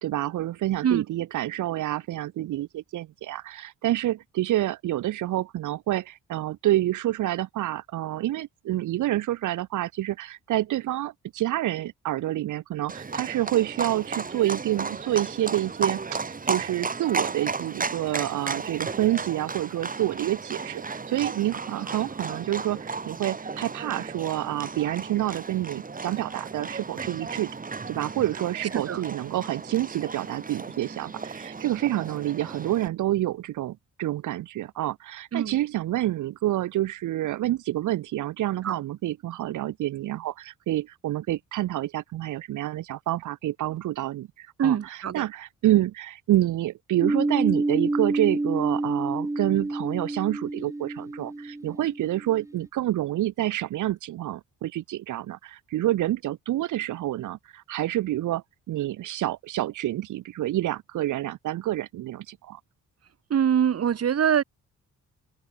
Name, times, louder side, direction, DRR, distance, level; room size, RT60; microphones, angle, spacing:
voice 1, 0.0-27.5 27.9-62.6, right 14 dB, 80° right, 2.5 m, -28 dB
Livestock farm animals working animals, 12.9-32.9, right 4 dB, 30° right, 3.2 m, -34 dB
voice 2, 44.6-45.3 63.3-64.4, right 8 dB, 55° right, 2.9 m, -24 dB
sound 1, 47.0-52.5, right 2 dB, 10° right, 1.2 m, -28 dB
cardioid pair, 90°, 30 cm